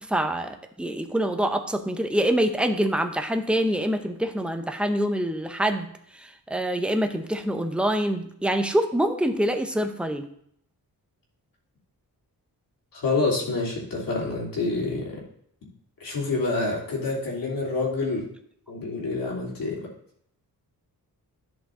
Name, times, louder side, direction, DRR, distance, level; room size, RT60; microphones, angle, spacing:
voice 1, 0.0-5.9 6.1-10.3, right 1 dB, 5° right, 5 dB, 0.8 m, -25 dB
voice 2, 12.9-15.2 16.0-18.2 18.7-19.9, left 3 dB, 65° left, -4 dB, 2.9 m, -27 dB
11.0 x 5.8 x 3.7 m, 0.68 s
wide cardioid pair, 135°, 37 cm